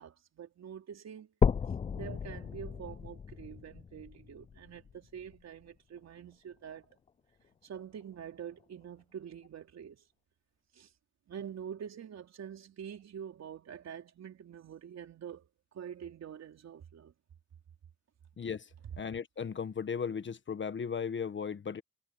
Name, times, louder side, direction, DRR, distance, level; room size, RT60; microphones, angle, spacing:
voice 1, 0.0-1.3 1.9-6.9 7.6-10.1 10.7-10.9 11.3-15.5 15.7-17.1, right 8 dB, 60° right, 3.9 m, -46 dB
sound 1, 1.4-5.4 6.0-6.1 6.6-6.7 7.1-7.2 8.0-8.1, left 6 dB, 20° left, 0.3 m, -34 dB
voice 2, 18.4-18.7 19.0-21.8, left 6 dB, 40° left, 1.4 m, -36 dB
cardioid pair, 90°, 30 cm